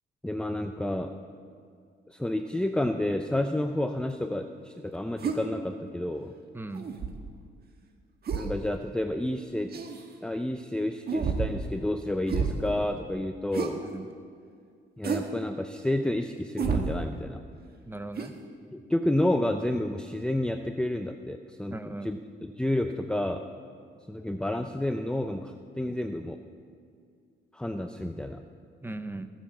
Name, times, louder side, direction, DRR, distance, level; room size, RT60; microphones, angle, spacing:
voice 1, 0.2-1.1 2.1-6.3 8.3-9.7 10.2-13.8 15.0-17.4 18.7-21.8 22.0-23.4 24.1-26.4 27.5-28.4, left 1 dB, 5° left, 6 dB, 0.6 m, -30 dB
sound 1, 5.2-5.4 6.7-7.3 8.3-8.7 9.7-10.0 11.1-11.6 12.3-12.6 13.5-13.7 15.0-15.3 16.6-16.9 18.2-18.3, right 5 dB, 50° right, 1.6 m, -30 dB
voice 2, 6.5-6.9 13.9-14.1 17.9-18.3 21.7-22.2 25.9-26.0 28.8-29.3, right 2 dB, 10° right, 10 dB, 0.9 m, -38 dB
19.5 x 7.4 x 7.4 m, 2.2 s
cardioid pair, 90°, 20 cm